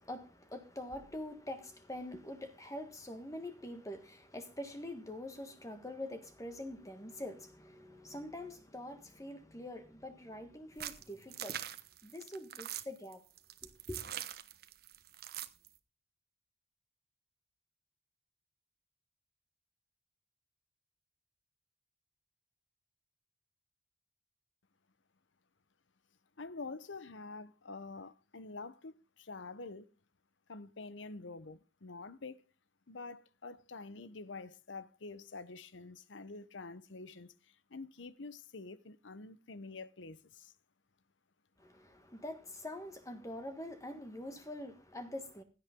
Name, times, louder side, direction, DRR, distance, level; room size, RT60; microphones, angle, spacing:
voice 1, 0.0-11.6 12.0-13.2 13.6-14.0 41.6-45.4, left 1 dB, 15° left, 1.5 m, -45 dB
sound 1, 10.8-15.7, right 11 dB, 55° right, 1.1 m, -42 dB
voice 2, 26.4-29.9 30.5-32.4 32.9-40.5, left 3 dB, 75° left, 0.9 m, -47 dB
16.0 x 11.0 x 3.6 m
head